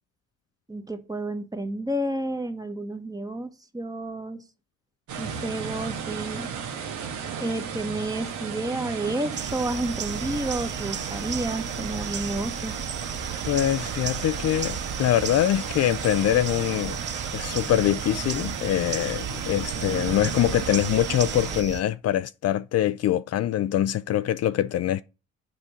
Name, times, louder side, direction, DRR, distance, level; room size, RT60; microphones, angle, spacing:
voice 1, 0.7-4.4 5.2-6.5 7.4-12.7, right 1 dB, 10° right, 1.2 m, -30 dB
sound 1, 5.1-21.6, right 7 dB, 80° right, 1.4 m, -34 dB
sound 2, 9.4-21.8, right 7 dB, 35° right, 0.6 m, -35 dB
voice 2, 13.5-17.0 17.3-25.0, left 12 dB, 55° left, 0.4 m, -24 dB
7.6 x 5.2 x 6.1 m
cardioid pair, 90°, 30 cm